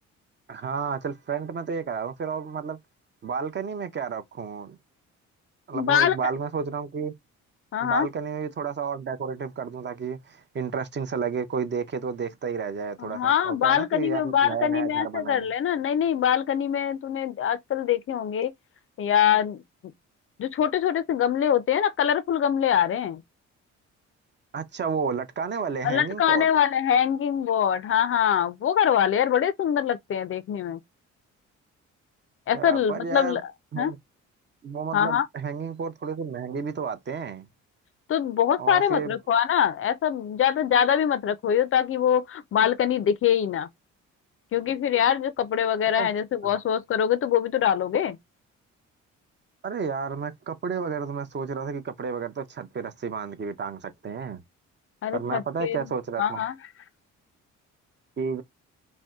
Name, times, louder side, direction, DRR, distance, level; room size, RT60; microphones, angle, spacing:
voice 1, 0.5-2.8 3.2-4.8 5.7-7.1 7.8-15.5 24.5-26.5 32.5-33.4 33.7-34.0 34.6-37.5 38.6-39.1 46.0-46.1 46.4-46.6 49.6-54.4 55.1-56.4 58.2-58.4, right 6 dB, 35° right, 0.6 m, -31 dB
voice 2, 5.7-6.2 7.7-8.1 13.0-18.5 19.0-19.6 20.4-23.2 25.8-30.8 32.5-33.4 33.8-33.9 34.9-35.3 38.1-43.7 44.5-48.2 55.0-55.9 56.2-56.6, left 9 dB, 45° left, 0.4 m, -23 dB
2.6 x 2.1 x 3.4 m
cardioid pair, 90°, 30 cm